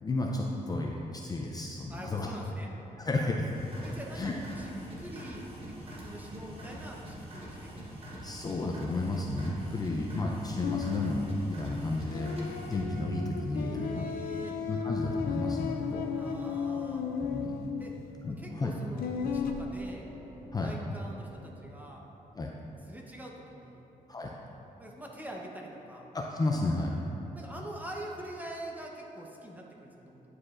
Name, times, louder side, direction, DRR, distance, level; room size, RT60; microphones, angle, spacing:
voice 1, 0.0-2.3 3.0-3.5 4.1-4.3 8.2-12.3 12.5-14.1 14.7-16.0 17.3-17.7 18.2-18.7 20.5-20.7 22.4-22.5 24.1-24.3 26.1-26.9, left 2 dB, 25° left, -1 dB, 0.4 m, -32 dB
voice 2, 1.9-2.7 3.8-4.7 5.0-8.0 8.3-8.4 9.4-10.2 13.5-14.6 16.1-17.1 17.8-18.0 18.3-20.0 20.4-22.0 22.9-23.9 24.8-26.1 27.3-30.2, right 1 dB, 10° right, -1 dB, 0.8 m, -45 dB
sound 1, 3.5-13.0, right 1 dB, 40° right, 1.3 m, -44 dB
sound 2, 10.6-19.5, left 6 dB, 90° left, 0.5 m, -35 dB
sound 3, 19.2-22.6, right 1 dB, 70° right, 1.1 m, -50 dB
9.5 x 4.8 x 2.5 m, 3.0 s
cardioid pair, 110°, 15 cm